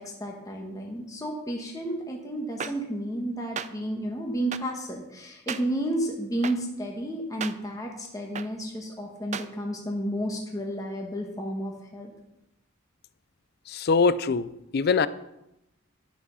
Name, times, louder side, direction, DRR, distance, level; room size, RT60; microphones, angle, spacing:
voice 1, 0.0-12.1, right 1 dB, 15° left, 0 dB, 1.2 m, -32 dB
sound 1, 2.6-2.7 3.6-3.7 4.5-4.6 5.5-5.6 6.4-6.5 7.4-7.5 8.3-8.5 9.3-9.5, right 7 dB, 35° right, 0.4 m, -32 dB
voice 2, 13.7-15.1, left 4 dB, 50° left, 16 dB, 0.4 m, -23 dB
11.0 x 5.9 x 5.6 m, 0.88 s
head